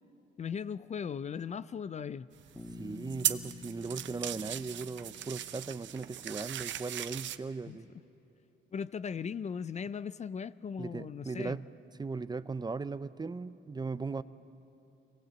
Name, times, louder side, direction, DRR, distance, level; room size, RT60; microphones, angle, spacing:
voice 1, 0.4-2.3 7.7-7.8 8.7-11.6, left 6 dB, 35° left, 15 dB, 0.4 m, -38 dB
sound 1, 2.3-7.4, right 11 dB, 70° right, 0.8 m, -38 dB
Bass guitar, 2.5-6.6, left 4 dB, 5° left, 2.2 m, -50 dB
voice 2, 2.8-7.9 10.8-11.7 12.0-14.2, right 4 dB, 20° right, 14 dB, 0.5 m, -38 dB
23.5 x 19.5 x 8.0 m, 2.9 s
cardioid pair, 90°, 20 cm